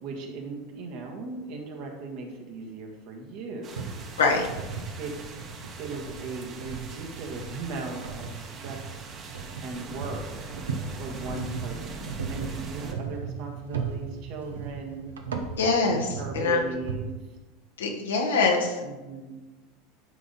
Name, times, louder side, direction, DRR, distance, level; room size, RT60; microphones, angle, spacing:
voice 1, 0.0-4.0 5.0-5.4 5.8-8.9 9.6-10.5 11.0-15.1 16.2-17.1 18.8-19.4, right 3 dB, 65° right, 2 dB, 1.6 m, -38 dB
sound 1, 3.6-12.9, right 4 dB, 45° right, 1.2 m, -42 dB
sound 2, 3.8-17.0, right 5 dB, 90° right, 0.8 m, -37 dB
voice 2, 15.6-16.6 17.8-18.8, left 4 dB, 85° left, 1 dB, 1.3 m, -24 dB
10.5 x 4.1 x 4.0 m, 1.2 s
hypercardioid pair, 90°, 0 cm